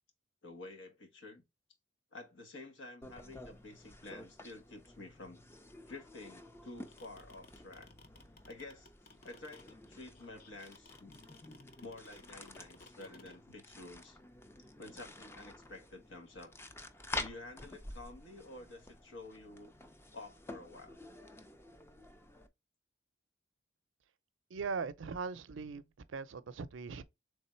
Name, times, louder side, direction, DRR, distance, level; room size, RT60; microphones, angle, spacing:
voice 1, 0.4-1.4 2.1-5.4 5.9-7.9 8.5-8.9 9.2-11.1 11.8-14.2 14.8-16.5 17.2-19.7 20.1-21.0, left 2 dB, 75° left, 1.2 m, -50 dB
sound 1, 3.0-22.5, left 2 dB, 15° left, 0.4 m, -50 dB
sound 2, 6.6-13.4, left 3 dB, 50° left, 0.6 m, -57 dB
voice 2, 24.5-25.8 26.1-27.0, right 5 dB, 85° right, 0.5 m, -39 dB
3.6 x 3.3 x 4.3 m
head